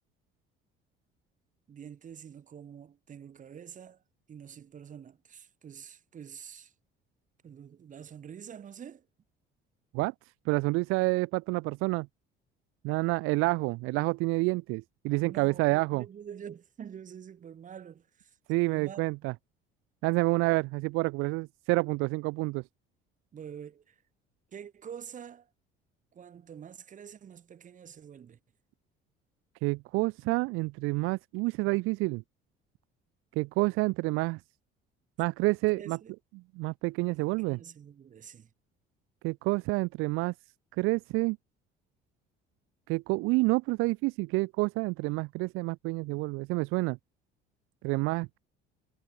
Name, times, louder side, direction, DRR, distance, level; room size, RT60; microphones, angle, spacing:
voice 1, 1.7-4.0 4.3-6.7 7.4-9.1 15.2-19.1 23.3-24.0 24.5-25.5 26.1-28.4 35.7-36.1 37.0-38.5, right 8 dB, 40° right, 3.9 m, -47 dB
voice 2, 10.5-12.1 12.8-16.0 18.5-19.3 20.0-22.6 29.6-32.2 33.3-34.4 35.2-36.0 36.6-37.6 39.2-40.3 40.8-41.4 42.9-47.0 47.8-48.4, right 24 dB, 85° right, 1.3 m, -28 dB
cardioid pair, 125°, 20 cm